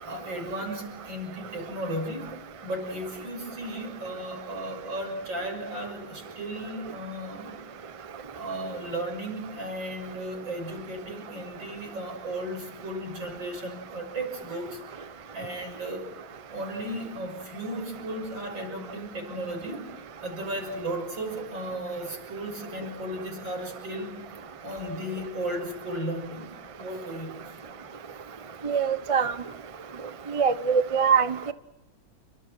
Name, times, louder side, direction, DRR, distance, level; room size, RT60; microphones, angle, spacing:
voice 1, 0.0-2.3 2.6-7.6 8.3-16.1 16.5-24.2 24.6-26.5 26.8-27.8, right 1 dB, 65° right, 4 dB, 7.1 m, -35 dB
voice 2, 28.6-29.3 30.3-31.3, right 6 dB, 30° right, 12 dB, 0.5 m, -23 dB
29.5 x 25.0 x 6.2 m, 0.91 s
omnidirectional pair, 2.2 m